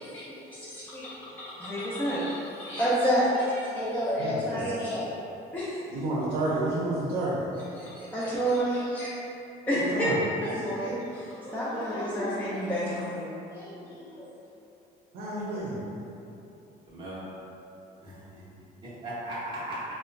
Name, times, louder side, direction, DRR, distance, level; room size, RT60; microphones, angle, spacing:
voice 1, 0.0-5.1 5.5-5.8 7.7-9.1 9.7-14.3, equal, 10° left, -10 dB, 0.4 m, -30 dB
voice 2, 4.2-4.7 5.9-7.4 9.7-10.1 15.1-15.8, right 2 dB, 80° right, -7 dB, 0.6 m, -30 dB
voice 3, 6.3-6.7 16.9-17.2 18.0-18.4 18.8-19.8, right 1 dB, 30° right, -10 dB, 0.6 m, -38 dB
2.9 x 2.1 x 2.5 m, 2.8 s
cardioid pair, 110°, 17 cm